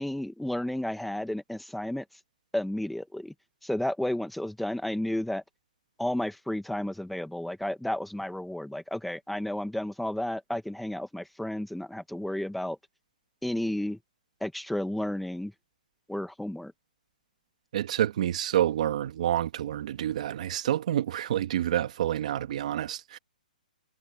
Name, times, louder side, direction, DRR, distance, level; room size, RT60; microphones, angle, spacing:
voice 1, 0.0-2.0 2.5-3.3 3.6-5.4 6.0-12.8 13.4-14.0 14.4-15.5 16.1-16.7, left 1 dB, ahead, 1.3 m, -32 dB
voice 2, 17.7-23.2, right 11 dB, 55° right, 2.1 m, -28 dB
hypercardioid pair, 150°, 5 cm